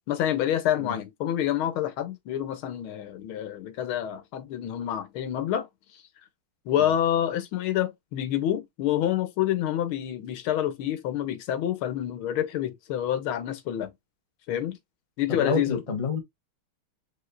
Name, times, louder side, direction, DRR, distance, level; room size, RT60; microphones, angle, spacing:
voice 1, 0.1-5.7 6.7-13.9 14.5-14.8 15.2-15.8, left 11 dB, 80° left, 1.7 m, -27 dB
voice 2, 15.3-16.2, left 4 dB, 35° left, 0.5 m, -28 dB
5.0 x 3.7 x 2.5 m
omnidirectional pair, 2.3 m